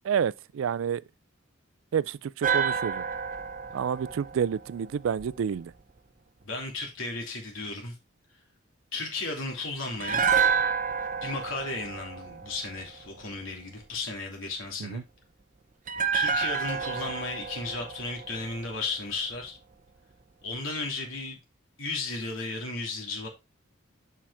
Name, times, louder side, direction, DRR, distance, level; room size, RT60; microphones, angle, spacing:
voice 1, 0.0-1.0 1.9-3.0 3.7-5.7 14.8-15.0, right 7 dB, 80° right, 0.3 m, -29 dB
sound 1, 2.4-5.6 10.0-13.2 15.9-19.1 19.3-19.5, right 6 dB, 40° right, 0.7 m, -29 dB
voice 2, 6.4-7.9 8.9-10.4 11.2-15.0 16.1-19.6 20.4-21.4 21.8-23.3, left 3 dB, 85° left, 2.8 m, -34 dB
7.5 x 5.7 x 3.4 m
head